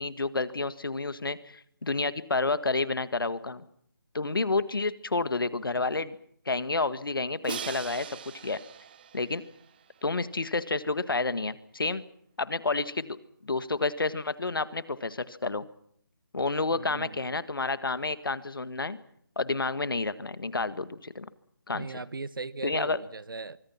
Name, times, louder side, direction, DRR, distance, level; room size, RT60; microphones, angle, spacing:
voice 1, 0.0-3.6 4.1-6.2 6.5-8.6 9.1-9.4 10.0-12.0 12.4-13.2 13.4-15.7 16.3-19.0 19.4-21.3 21.7-21.9 22.6-23.0, left 3 dB, 75° left, 1.8 m, -30 dB
Crash cymbal, 7.4-10.4, right 8 dB, 25° right, 1.1 m, -41 dB
voice 2, 16.7-17.4 21.7-23.6, right 3 dB, 70° right, 1.2 m, -39 dB
24.5 x 24.5 x 5.9 m
figure-of-eight pair, 165°, 12 cm